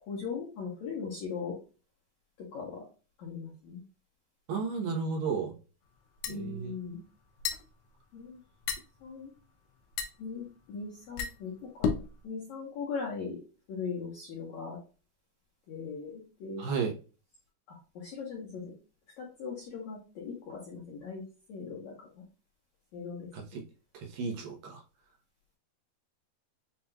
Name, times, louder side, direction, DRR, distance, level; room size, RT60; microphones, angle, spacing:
voice 1, 0.1-1.6 2.4-2.8 3.2-3.8 6.3-7.0 8.1-8.4 9.0-9.3 10.2-11.9 12.2-13.4 13.7-14.8 15.7-16.6 17.7-18.7 19.2-21.2 21.5-22.2 22.9-23.3, left 5 dB, 70° left, 1.8 m, -39 dB
voice 2, 4.5-5.6 6.3-6.8 16.6-16.9 23.3-23.6 23.9-24.8, right 5 dB, 70° right, 2.5 m, -33 dB
sound 1, 5.8-12.2, left 6 dB, 90° left, 2.9 m, -36 dB
7.1 x 2.9 x 2.3 m
omnidirectional pair, 4.6 m